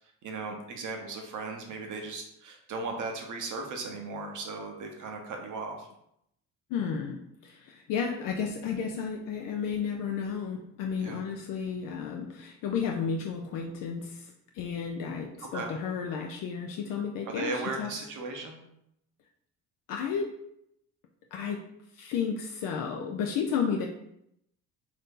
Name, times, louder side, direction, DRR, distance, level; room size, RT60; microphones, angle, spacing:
voice 1, 0.2-5.9 11.0-11.2 15.5-15.7 17.3-18.6, right 3 dB, 55° right, 3 dB, 0.9 m, -37 dB
voice 2, 6.7-18.1 19.9-20.4 21.3-21.6 21.9-23.9, left 6 dB, 65° left, 1 dB, 0.5 m, -32 dB
2.8 x 2.7 x 3.6 m, 0.77 s
supercardioid pair, 70°, 36 cm